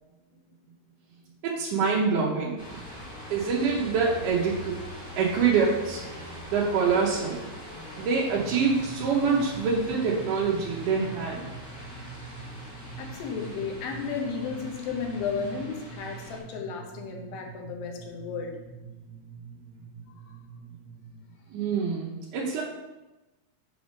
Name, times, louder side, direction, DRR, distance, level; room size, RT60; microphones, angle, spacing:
voice 1, 1.4-2.6 3.3-4.8 5.2-6.0 6.5-7.4 8.0-11.4 21.5-22.6, right 5 dB, 70° right, -5 dB, 2.3 m, -25 dB
sound 1, 2.6-16.4, equal, 25° left, 1.2 m, -43 dB
sound 2, 8.3-21.3, right 5 dB, 50° right, 1.8 m, -44 dB
voice 2, 13.0-18.6 20.1-20.3, left 5 dB, 85° left, 1 dB, 2.8 m, -34 dB
7.1 x 3.4 x 6.2 m, 1.1 s
omnidirectional pair, 4.0 m